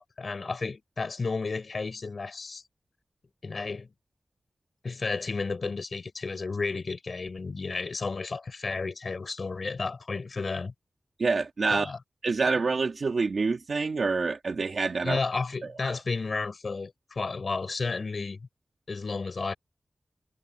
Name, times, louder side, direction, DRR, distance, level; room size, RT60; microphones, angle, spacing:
voice 1, 0.0-2.6 3.4-3.9 4.8-10.7 11.7-12.0 15.0-18.4 18.9-19.5, left 4 dB, 65° left, 5.9 m, -32 dB
voice 2, 11.2-11.9 12.2-15.2 15.8-15.9, right 4 dB, 75° right, 1.5 m, -27 dB
wide cardioid pair, 100°, 0 cm